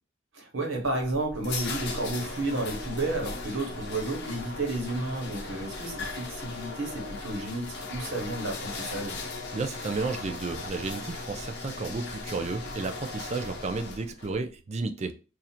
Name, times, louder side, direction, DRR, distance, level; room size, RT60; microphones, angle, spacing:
voice 1, 0.3-9.2, right 2 dB, 65° right, 1.3 m, -32 dB
sound 1, 0.8-14.3, left 3 dB, 50° left, 0.7 m, -38 dB
voice 2, 9.5-15.2, right 3 dB, 30° right, 0.3 m, -32 dB
2.8 x 2.5 x 4.1 m
head